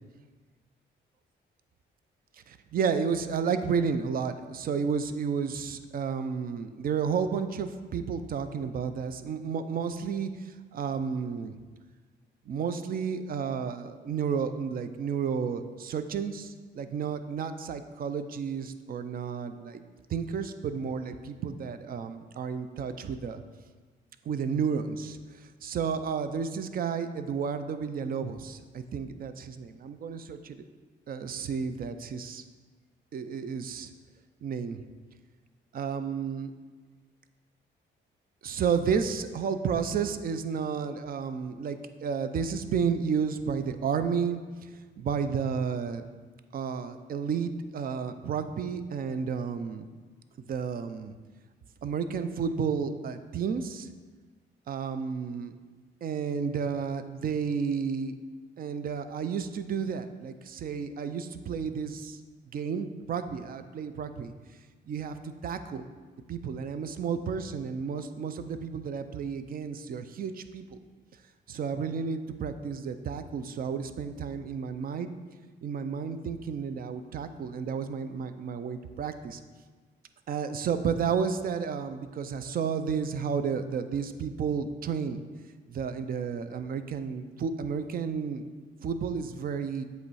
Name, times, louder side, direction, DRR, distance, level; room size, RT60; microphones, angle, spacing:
voice 1, 2.5-11.6 12.5-19.8 20.1-23.4 24.3-25.2 25.6-30.6 31.1-32.4 33.1-33.9 34.4-34.8 35.7-36.5 38.4-44.4 45.0-46.1 46.5-49.9 50.5-51.1 51.8-53.9 54.7-55.5 56.0-58.1 58.6-62.2 62.5-64.3 64.9-65.9 66.3-70.8 71.5-75.1 75.6-79.4 80.3-85.2 85.7-88.4 88.8-89.8, right 6 dB, 45° right, 10 dB, 0.5 m, -32 dB
7.8 x 3.1 x 4.7 m, 1.4 s
cardioid pair, 90°, 20 cm